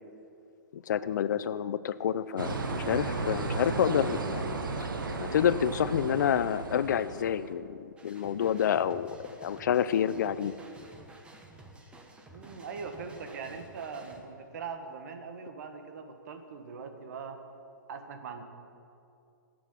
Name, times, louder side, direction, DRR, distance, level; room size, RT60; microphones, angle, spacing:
voice 1, 0.7-4.6 5.2-9.1 9.4-10.5, left 9 dB, 60° left, 15 dB, 0.5 m, -28 dB
sound 1, 2.4-7.5, right 3 dB, 85° right, 1.5 m, -34 dB
sound 2, 8.0-14.2, right 2 dB, 10° right, 1.1 m, -52 dB
voice 2, 12.3-17.4 17.9-18.4, right 5 dB, 55° right, 7 dB, 1.5 m, -41 dB
10.0 x 8.4 x 9.8 m, 2.6 s
hypercardioid pair, 145°, 11 cm